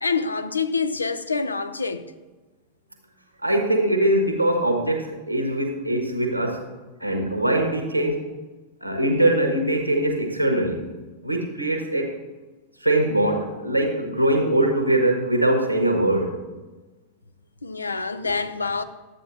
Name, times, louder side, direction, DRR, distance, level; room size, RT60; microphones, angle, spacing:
voice 1, 0.0-2.1 17.6-18.8, left 4 dB, 80° left, 0.5 m, -26 dB
voice 2, 3.4-6.6 7.0-8.2 8.8-10.9 11.2-12.1 12.8-16.3, right 1 dB, 90° right, 1.3 m, -22 dB
12.5 x 8.4 x 2.7 m
figure-of-eight pair, 90°, 0 cm